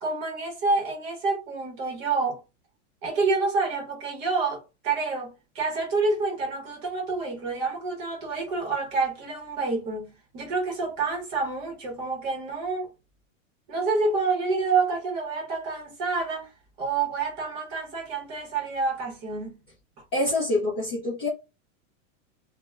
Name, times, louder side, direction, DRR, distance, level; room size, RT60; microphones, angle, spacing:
voice 1, 0.0-2.4 3.0-12.9 13.7-16.5 16.8-19.6, right 4 dB, 30° right, 0.8 m, -28 dB
voice 2, 20.1-21.3, left 2 dB, 20° left, 0.3 m, -26 dB
2.2 x 2.0 x 3.1 m
supercardioid pair, 170°, 39 cm